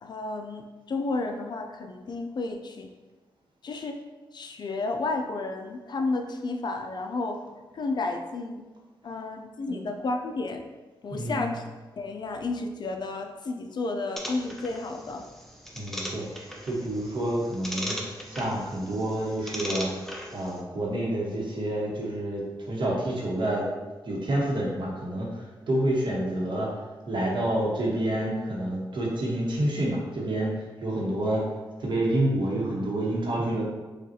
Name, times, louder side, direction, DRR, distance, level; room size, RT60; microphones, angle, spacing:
voice 1, 0.0-2.9 3.6-4.0 4.3-7.4 7.7-8.7 9.0-10.6 11.0-11.6 11.9-15.3, left 3 dB, 55° left, 4 dB, 0.4 m, -32 dB
voice 2, 11.1-11.6 15.7-18.0 18.3-19.9 20.3-23.7 24.0-26.7 27.1-31.4 31.8-33.6, right 1 dB, 65° right, -3 dB, 1.1 m, -28 dB
sound 1, 14.2-20.6, equal, 5° left, 0.6 m, -38 dB
5.2 x 2.4 x 2.8 m, 1.2 s
cardioid pair, 75°, 9 cm